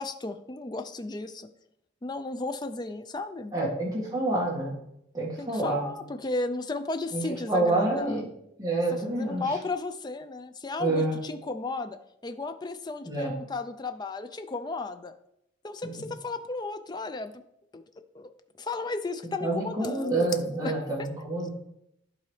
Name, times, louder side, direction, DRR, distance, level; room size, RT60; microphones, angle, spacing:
voice 1, 0.0-1.5 2.0-3.5 5.4-8.2 8.9-12.0 12.2-15.1 15.6-17.4 17.7-17.8 18.1-18.3 18.6-21.1, left 3 dB, 20° left, 9 dB, 0.4 m, -34 dB
voice 2, 3.5-4.7 5.1-5.9 7.1-8.3 8.6-9.4 10.8-11.2 13.0-13.3 15.8-16.1 19.4-21.5, right 2 dB, 15° right, -4 dB, 1.8 m, -28 dB
11.0 x 3.9 x 3.2 m, 0.78 s
head